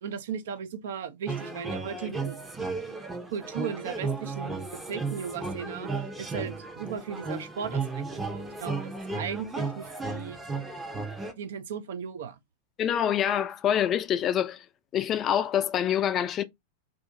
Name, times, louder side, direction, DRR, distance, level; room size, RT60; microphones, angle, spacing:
voice 1, 0.0-2.4 3.3-10.4 11.4-12.4, right 7 dB, 60° right, 0.4 m, -37 dB
sound 1, 1.3-11.3, right 3 dB, 10° right, 0.7 m, -34 dB
voice 2, 12.8-14.6 14.9-16.4, left 10 dB, 30° left, 0.3 m, -26 dB
2.5 x 2.5 x 3.7 m
figure-of-eight pair, 90°, 0 cm